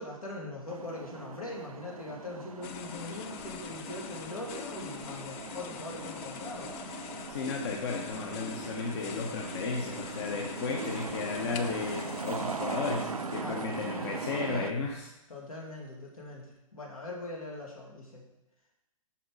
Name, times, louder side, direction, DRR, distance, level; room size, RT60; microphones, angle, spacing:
voice 1, 0.0-6.7 13.4-13.7 15.3-18.2, left 2 dB, 80° left, -2 dB, 2.4 m, -41 dB
sound 1, 0.7-14.7, right 4 dB, 90° right, 0.5 m, -40 dB
sound 2, 2.6-14.9, left 9 dB, 25° left, 0.4 m, -44 dB
voice 2, 7.3-15.1, left 4 dB, 50° left, 0 dB, 1.0 m, -34 dB
6.1 x 5.6 x 4.8 m, 0.95 s
figure-of-eight pair, 125°, 18 cm